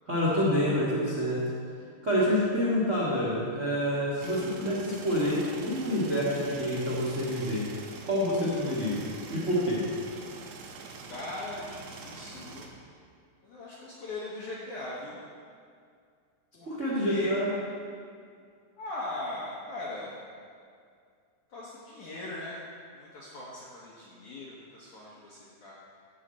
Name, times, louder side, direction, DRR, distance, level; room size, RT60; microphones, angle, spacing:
voice 1, 0.0-1.4 2.0-7.6 8.0-9.0 9.3-9.8 16.6-17.5, equal, 55° right, -7 dB, 0.8 m, -27 dB
sound 1, 4.2-12.7, right 4 dB, 75° right, 3.0 m, -45 dB
voice 2, 11.0-12.7 13.4-15.2 16.5-16.8 17.1-17.4 18.8-20.2 21.5-22.6 22.9-25.8, left 2 dB, 70° left, -6 dB, 1.9 m, -40 dB
15.5 x 6.5 x 4.3 m, 2.2 s
omnidirectional pair, 5.2 m